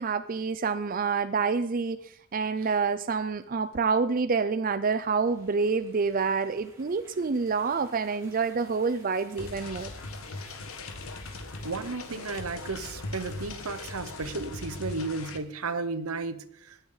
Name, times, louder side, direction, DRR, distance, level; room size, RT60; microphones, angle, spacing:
voice 1, 0.0-9.9, right 5 dB, 40° right, 11 dB, 0.5 m, -27 dB
sound 1, 4.8-15.6, right 1 dB, 15° right, 2.9 m, -55 dB
sound 2, 9.4-15.4, left 3 dB, 70° left, 1.5 m, -40 dB
voice 2, 11.6-16.9, right 3 dB, 80° right, 12 dB, 1.0 m, -34 dB
20.5 x 8.0 x 4.0 m, 0.71 s
head